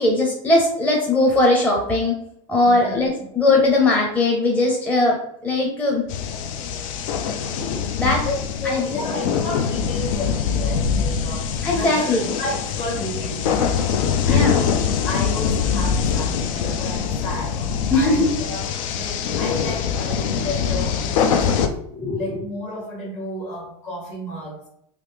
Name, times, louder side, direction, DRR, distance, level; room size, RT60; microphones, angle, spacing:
voice 1, 0.0-2.2 2.5-6.0 7.5-8.2 8.6-9.0 11.6-12.3 14.3-14.6 17.9-18.3 21.7-22.5, left 2 dB, 10° left, -2 dB, 0.6 m, -20 dB
voice 2, 2.6-3.1 8.2-17.7 17.9-18.7 18.9-21.7 22.2-24.7, left 1 dB, 50° left, -1 dB, 1.4 m, -32 dB
sound 1, 6.1-21.7, left 7 dB, 80° left, 0.4 m, -23 dB
3.2 x 2.5 x 3.3 m, 0.72 s
supercardioid pair, 125°, 17 cm